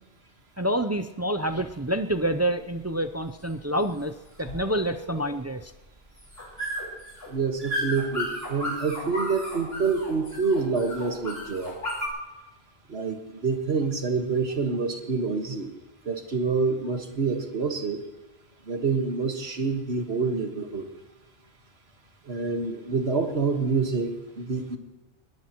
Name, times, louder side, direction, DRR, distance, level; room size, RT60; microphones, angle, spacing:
voice 1, 0.6-4.1 4.4-5.7, right 1 dB, 25° right, 8 dB, 0.3 m, -27 dB
sound 1, 1.4-12.1, equal, 60° left, 4.8 m, -35 dB
voice 2, 7.3-11.8 12.9-15.7 16.1-18.0 18.7-20.9 22.3-24.8, right 4 dB, 65° right, 5 dB, 1.8 m, -27 dB
22.0 x 17.5 x 3.0 m, 1.1 s
omnidirectional pair, 1.1 m